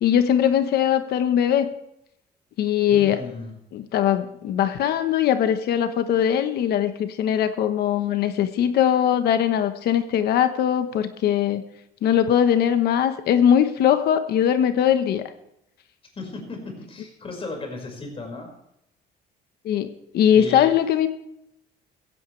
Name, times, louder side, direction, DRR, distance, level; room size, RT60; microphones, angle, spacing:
voice 1, 0.0-1.7 2.6-3.2 3.7-11.6 12.0-15.2 19.6-21.1, left 9 dB, 70° left, 9 dB, 1.2 m, -21 dB
voice 2, 2.9-3.5 16.2-18.5 20.3-20.7, left 2 dB, 35° left, 2 dB, 5.4 m, -35 dB
16.0 x 15.5 x 3.3 m, 0.79 s
cardioid pair, 110°, 17 cm